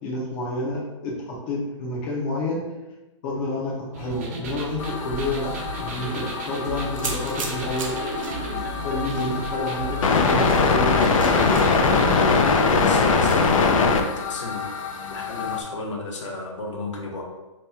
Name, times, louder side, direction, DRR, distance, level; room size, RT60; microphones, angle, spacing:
voice 1, 0.0-2.6 3.2-5.5 5.7-8.0 8.8-11.0, left 1 dB, 25° left, -4 dB, 0.5 m, -29 dB
sound 1, 3.9-12.2, right 1 dB, 30° right, 0.4 m, -33 dB
sound 2, 4.8-15.6, left 4 dB, 90° left, 0.4 m, -22 dB
sound 3, 6.9-13.8, right 3 dB, 85° right, 0.8 m, -38 dB
voice 2, 12.8-14.7 15.1-17.2, left 2 dB, 65° left, -1 dB, 0.8 m, -33 dB
2.9 x 2.2 x 3.3 m, 1.1 s
hypercardioid pair, 160°, 16 cm